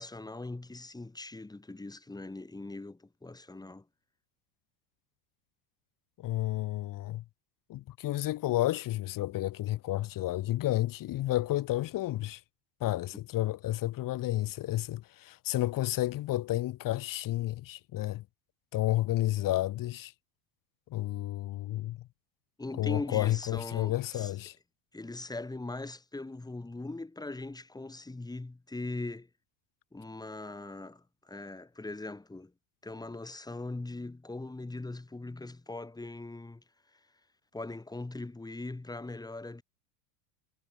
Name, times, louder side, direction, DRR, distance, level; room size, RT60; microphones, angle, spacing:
voice 1, 0.0-3.9 22.6-24.3 24.9-29.3 29.9-32.5 32.8-36.6 37.5-39.6, left 2 dB, 10° left, 7.4 m, -40 dB
voice 2, 6.2-7.2 7.7-12.4 12.8-18.2 18.7-20.1 20.9-22.1 22.8-24.6, left 15 dB, 40° left, 3.1 m, -31 dB
supercardioid pair, 125°, 48 cm